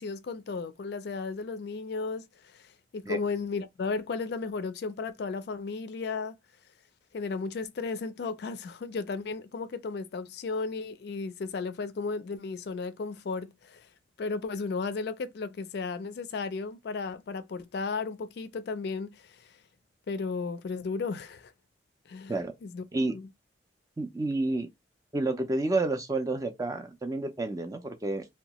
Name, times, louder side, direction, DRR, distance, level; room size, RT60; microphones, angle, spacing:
voice 1, 0.0-2.3 2.5-6.3 7.1-13.9 14.2-19.5 20.1-21.5 22.1-22.3 22.6-22.8 23.1-23.3, left 4 dB, 60° left, 0.3 m, -34 dB
voice 2, 24.0-24.7 25.1-28.2, right 2 dB, 20° right, 0.4 m, -30 dB
2.8 x 2.2 x 2.9 m
head